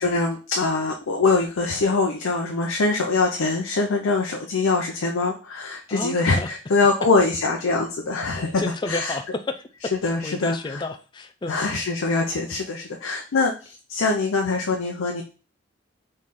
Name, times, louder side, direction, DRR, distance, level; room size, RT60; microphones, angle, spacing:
voice 1, 0.0-9.2 10.0-10.8 11.5-15.2, left 3 dB, 90° left, 2 dB, 0.6 m, -23 dB
voice 2, 5.9-6.5 8.3-11.6, left 2 dB, 20° left, 9 dB, 0.3 m, -32 dB
4.1 x 3.2 x 3.6 m, 0.36 s
head